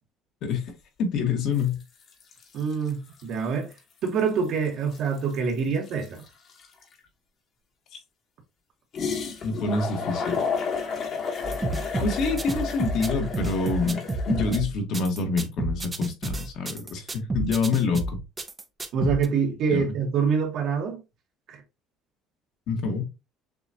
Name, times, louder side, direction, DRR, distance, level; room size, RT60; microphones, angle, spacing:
voice 1, 0.4-0.7 1.0-1.8 7.9-8.0 9.4-10.4 12.0-18.2 19.0-19.1 19.7-19.9 22.7-23.0, left 4 dB, 60° left, 1.4 m, -27 dB
sound 1, 1.6-1.8 2.1-3.3 3.7-3.8 4.1-6.9 8.9-14.6, left 5 dB, 40° left, 1.2 m, -32 dB
voice 2, 2.5-3.7 4.0-6.2 18.9-21.0 21.5-21.6, right 6 dB, 55° right, 1.3 m, -26 dB
sound 2, 11.4-19.3, right 2 dB, 15° right, 0.6 m, -30 dB
6.7 x 2.4 x 2.8 m
cardioid pair, 145°, 0 cm